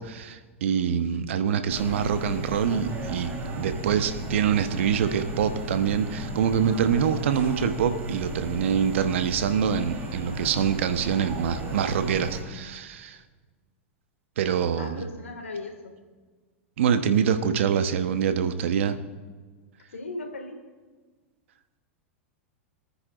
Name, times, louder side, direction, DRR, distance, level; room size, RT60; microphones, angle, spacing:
voice 1, 0.0-13.2 14.4-15.0 16.8-19.0, right 8 dB, 70° right, 9 dB, 1.0 m, -25 dB
sound 1, 1.7-12.4, right 1 dB, 30° right, 3.6 m, -35 dB
voice 2, 14.7-15.9 19.9-20.6, left 2 dB, 85° left, 5 dB, 2.0 m, -37 dB
27.0 x 9.6 x 2.5 m, 1.4 s
hypercardioid pair, 100°, 7 cm